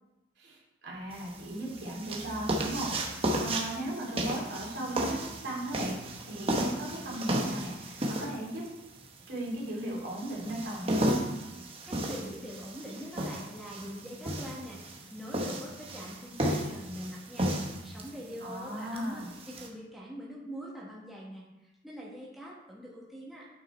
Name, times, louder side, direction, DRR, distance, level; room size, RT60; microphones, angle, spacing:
voice 1, 0.4-5.2 5.4-8.6 9.3-11.3 18.4-19.3, right 1 dB, 65° right, -4 dB, 2.7 m, -37 dB
sound 1, 1.1-19.7, right 1 dB, 30° right, 1.0 m, -34 dB
voice 2, 11.9-23.5, equal, ahead, -6 dB, 1.3 m, -44 dB
8.6 x 5.5 x 4.3 m, 1.0 s
head